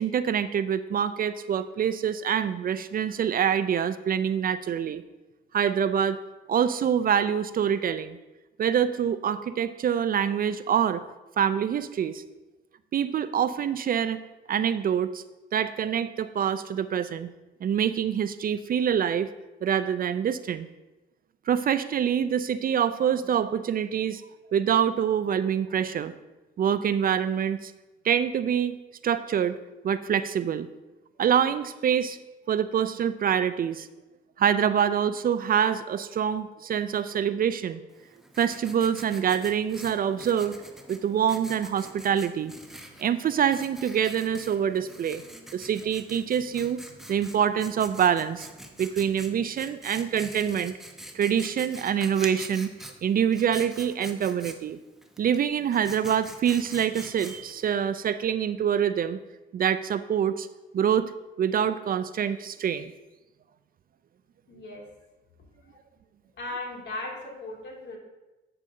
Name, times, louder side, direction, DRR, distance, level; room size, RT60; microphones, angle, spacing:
voice 1, 0.0-5.0 5.5-6.2 6.5-8.2 8.6-11.0 11.4-12.3 12.9-14.2 14.5-15.2 15.5-17.3 17.6-19.3 19.6-20.7 21.5-24.2 24.5-26.1 26.6-27.7 28.0-28.8 29.0-29.5 29.8-30.7 31.2-32.2 32.5-33.9 34.4-37.8 38.4-40.6 40.9-42.5 43.0-45.2 45.5-46.8 47.1-48.5 48.8-50.7 51.1-52.7 53.0-54.8 55.2-59.2 59.5-60.5 60.7-61.1 61.4-62.9, right 8 dB, 45° right, 13 dB, 0.4 m, -25 dB
Writing, 37.9-57.7, right 1 dB, ahead, 0.9 m, -45 dB
voice 2, 64.5-64.8 65.7-65.8 66.3-68.0, left 2 dB, 60° left, -2 dB, 2.6 m, -37 dB
8.8 x 6.6 x 3.7 m, 1.1 s
cardioid pair, 90°, 20 cm